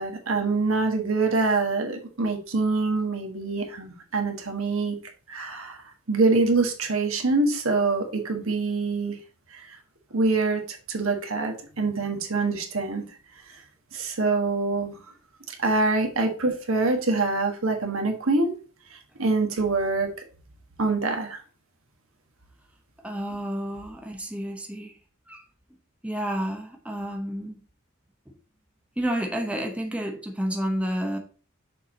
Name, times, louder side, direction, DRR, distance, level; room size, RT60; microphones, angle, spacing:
voice 1, 0.0-5.0 5.3-9.2 9.5-9.8 10.1-13.0 13.5-13.6 13.9-15.0 15.5-18.5 18.9-20.1 20.8-21.4, right 3 dB, 65° right, 1.5 m, -25 dB
voice 2, 23.0-25.0 25.3-25.4 26.0-27.6 29.0-31.2, equal, 5° right, 0.8 m, -30 dB
6.7 x 4.7 x 3.8 m
head